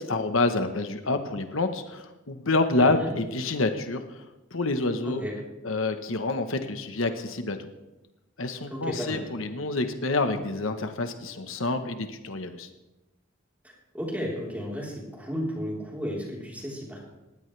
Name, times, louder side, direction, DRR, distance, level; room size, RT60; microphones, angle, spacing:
voice 1, 0.0-5.2 5.6-7.7 8.4-12.7, left 2 dB, 75° left, 7 dB, 1.2 m, -28 dB
voice 2, 2.8-3.1 5.0-5.3 8.7-9.2 13.6-17.0, equal, 10° right, -3 dB, 3.9 m, -33 dB
20.0 x 16.0 x 3.4 m, 1.0 s
head